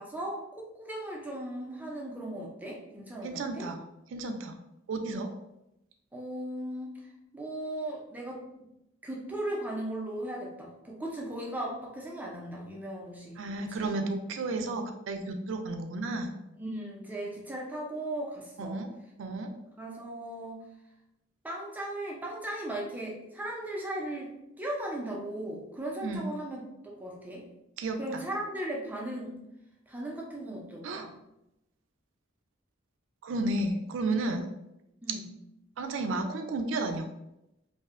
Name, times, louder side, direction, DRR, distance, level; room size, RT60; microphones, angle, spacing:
voice 1, 0.0-3.7 6.1-8.4 9.0-13.9 16.6-18.8 19.8-20.6 21.4-24.3 24.6-27.4 28.0-29.4 29.9-31.1 35.0-35.3, right 1 dB, 10° right, -3 dB, 0.4 m, -37 dB
voice 2, 3.2-3.8 4.1-4.6 4.9-5.3 13.4-16.4 18.6-18.9 19.2-19.5 26.0-26.3 27.8-28.2 30.8-31.1 33.2-34.5 35.8-37.1, right 2 dB, 80° right, 6 dB, 0.3 m, -32 dB
2.6 x 2.0 x 2.4 m, 0.87 s
head